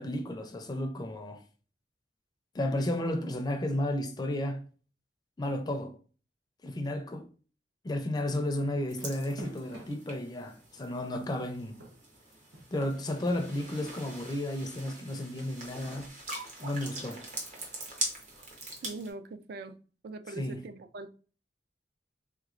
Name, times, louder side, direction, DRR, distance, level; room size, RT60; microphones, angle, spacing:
voice 1, 0.0-1.4 2.5-4.6 5.4-6.0 6.6-7.3 7.8-11.8 12.7-16.1 16.6-17.2 20.4-20.6, left 1 dB, 25° left, 0.4 m, -33 dB
sound 1, 8.7-10.6 11.1-14.4, right 1 dB, 80° right, 1.0 m, -51 dB
sound 2, 8.9-19.1, right 2 dB, 45° right, 0.9 m, -42 dB
voice 2, 18.8-19.8 20.0-21.1, right 3 dB, 60° right, 0.4 m, -42 dB
3.3 x 3.0 x 2.4 m
head